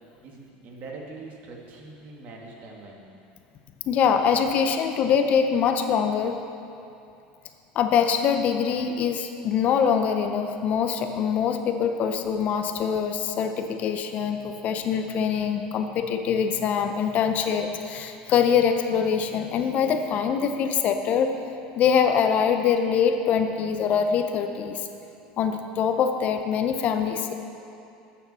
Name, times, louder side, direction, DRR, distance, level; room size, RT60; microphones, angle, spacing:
voice 1, 0.2-3.1, right 3 dB, 50° right, -2 dB, 1.9 m, -42 dB
voice 2, 3.9-6.4 7.7-21.4 21.8-24.9 25.4-27.3, left 7 dB, 45° left, 6 dB, 0.7 m, -24 dB
8.2 x 6.9 x 6.8 m, 2.6 s
supercardioid pair, 115°, 3 cm